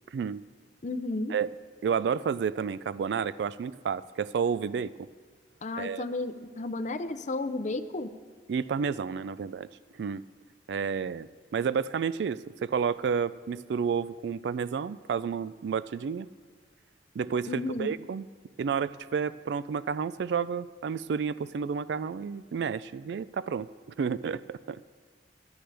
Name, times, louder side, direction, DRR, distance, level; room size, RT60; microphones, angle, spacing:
voice 1, 0.1-0.4 1.3-1.5 1.8-5.1 5.8-6.1 8.5-9.7 10.0-10.2 10.7-16.3 17.2-18.2 18.6-23.7 24.0-24.8, right 6 dB, 70° right, 17 dB, 0.3 m, -30 dB
voice 2, 0.8-1.3 5.6-8.1 17.5-17.9, left 2 dB, 45° left, 10 dB, 0.6 m, -33 dB
18.0 x 11.5 x 3.4 m, 1.5 s
head